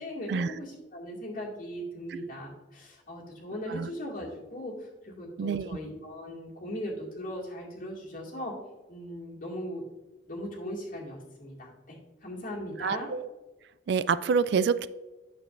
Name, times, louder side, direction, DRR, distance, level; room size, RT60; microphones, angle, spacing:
voice 1, 0.0-8.6 8.9-9.8 10.3-13.1, equal, 45° left, -3 dB, 2.2 m, -38 dB
voice 2, 5.4-5.8 12.8-13.3 13.9-14.9, right 5 dB, 65° right, 16 dB, 0.3 m, -27 dB
8.6 x 7.0 x 2.5 m, 1.1 s
head